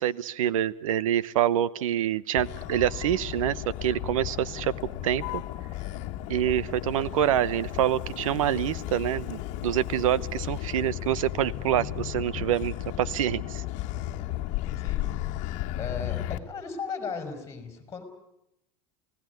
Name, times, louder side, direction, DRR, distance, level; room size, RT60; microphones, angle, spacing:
voice 1, 0.0-4.7 5.0-5.4 6.3-13.6, right 11 dB, 85° right, 19 dB, 1.0 m, -26 dB
Motor vehicle (road), 2.4-16.4, left 14 dB, 45° left, 1.8 m, -34 dB
voice 2, 14.8-15.5 15.7-18.0, left 5 dB, 15° left, 8 dB, 5.3 m, -37 dB
28.0 x 18.0 x 9.4 m, 0.84 s
supercardioid pair, 135°, 17 cm